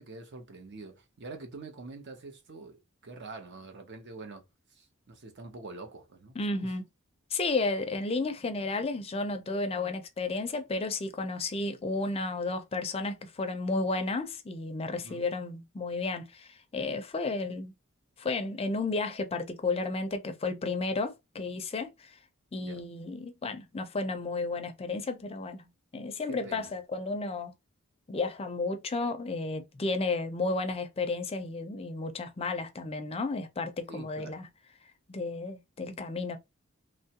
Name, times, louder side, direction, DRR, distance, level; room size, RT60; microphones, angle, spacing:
voice 1, 0.0-4.4 4.7-6.4 6.6-6.7 15.0-15.2 22.6-22.8 26.3-26.7 33.9-34.4, right 3 dB, 55° right, 0.7 m, -45 dB
voice 2, 6.3-6.8 7.3-17.7 18.2-22.2 22.5-25.7 25.9-27.5 28.1-34.5 35.1-36.4, left 3 dB, 30° left, 0.4 m, -32 dB
3.0 x 2.3 x 2.8 m
head